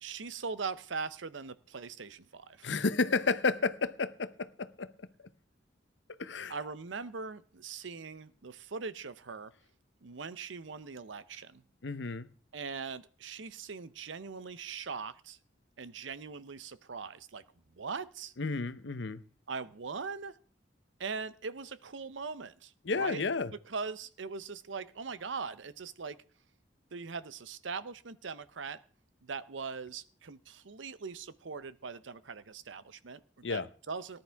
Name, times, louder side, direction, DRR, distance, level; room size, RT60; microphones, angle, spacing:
voice 1, 0.0-2.7 6.5-9.5 10.0-11.6 12.5-15.4 15.8-17.4 17.8-18.3 19.5-20.4 21.0-23.2 23.6-26.2 26.9-28.8 29.2-34.2, right 5 dB, 90° right, 0.7 m, -41 dB
voice 2, 2.6-4.9 6.2-6.5 11.8-12.3 18.4-19.2 22.8-23.5 33.4-33.7, left 4 dB, 75° left, 0.8 m, -31 dB
18.5 x 10.5 x 3.5 m
head